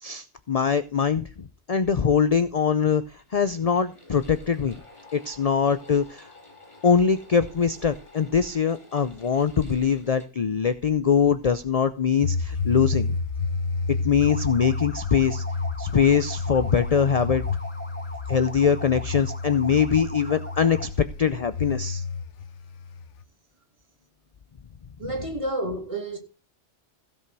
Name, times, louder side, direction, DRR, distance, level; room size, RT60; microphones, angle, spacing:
voice 1, 0.0-3.0 3.3-4.8 5.1-6.3 6.8-13.1 13.9-15.4 15.8-17.4 18.3-22.0, left 6 dB, 40° left, 0.6 m, -23 dB
sound 1, 3.1-10.3, left 2 dB, 25° left, 3.1 m, -51 dB
sound 2, 12.2-23.2, left 4 dB, 80° left, 1.2 m, -30 dB
sound 3, 14.2-21.0, equal, 10° left, 1.5 m, -41 dB
voice 2, 25.0-26.2, right 1 dB, 25° right, 2.8 m, -30 dB
16.0 x 5.4 x 6.1 m
omnidirectional pair, 1.2 m